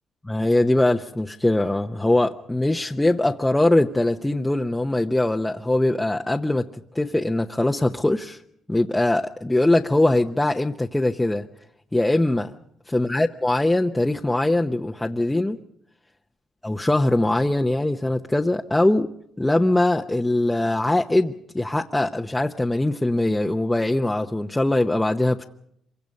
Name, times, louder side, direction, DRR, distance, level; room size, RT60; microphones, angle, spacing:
voice 1, 0.2-6.7 6.9-8.4 8.7-11.5 11.9-12.6 12.9-15.6 16.6-19.1 19.4-25.4, left 1 dB, 10° left, 2 dB, 0.9 m, -22 dB
26.5 x 24.0 x 5.4 m, 0.74 s
cardioid pair, 90°, 0 cm